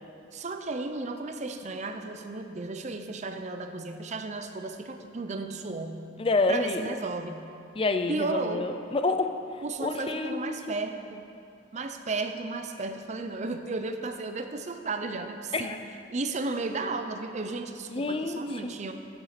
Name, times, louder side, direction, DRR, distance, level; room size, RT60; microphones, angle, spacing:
voice 1, 0.3-6.0 6.5-7.5 8.1-8.7 9.6-11.3 11.7-15.8 16.1-18.9, right 3 dB, 40° right, 7 dB, 0.5 m, -34 dB
voice 2, 6.2-7.0 7.8-10.8 15.5-15.8 17.9-18.7, left 3 dB, 30° left, 8 dB, 0.4 m, -29 dB
8.8 x 7.0 x 5.9 m, 2.5 s
head